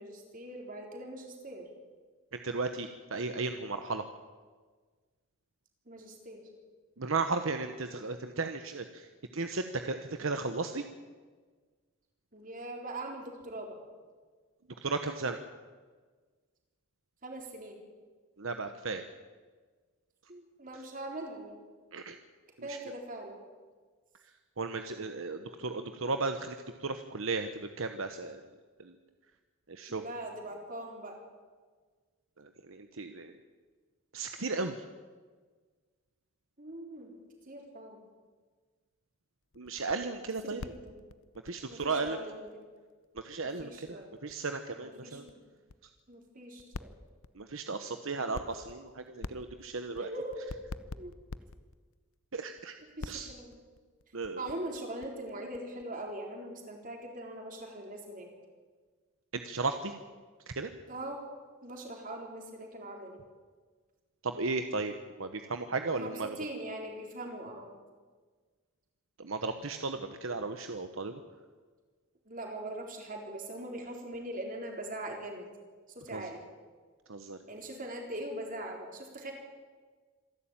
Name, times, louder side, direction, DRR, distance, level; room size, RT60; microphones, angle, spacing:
voice 1, 0.0-1.7 5.9-6.4 12.3-13.8 17.2-17.8 20.3-21.6 22.6-23.4 29.9-31.2 36.6-37.1 37.5-38.0 40.4-40.9 41.7-42.6 43.6-44.1 44.8-45.4 46.1-46.9 50.0-50.4 50.9-51.1 53.0-53.6 54.4-58.3 60.9-61.2 61.6-63.2 65.9-67.7 72.3-75.5 75.9-76.4 77.5-79.3, right 1 dB, 40° right, 2 dB, 3.9 m, -41 dB
voice 2, 2.3-4.0 7.0-10.8 14.8-15.4 18.4-19.0 21.9-22.2 22.6-22.8 24.6-28.4 28.8-29.0 29.7-30.0 32.4-33.3 34.1-34.9 39.6-40.6 41.4-42.2 43.1-45.2 47.3-50.1 52.3-52.8 53.1-53.3 54.1-54.5 59.3-59.9 60.5-60.7 64.2-66.3 69.2-71.2 76.1-76.3 77.1-77.4, right 3 dB, 65° right, 7 dB, 1.0 m, -35 dB
sound 1, 39.5-42.5 42.8-42.9 43.0-44.3 44.6-44.7 45.0-45.3 45.7-45.8 46.0-46.3 46.6-47.4 48.2-48.9 49.2-51.9 52.4-52.6 53.0-55.8, left 3 dB, 75° left, 0.7 m, -44 dB
26.5 x 11.5 x 9.0 m, 1.5 s
head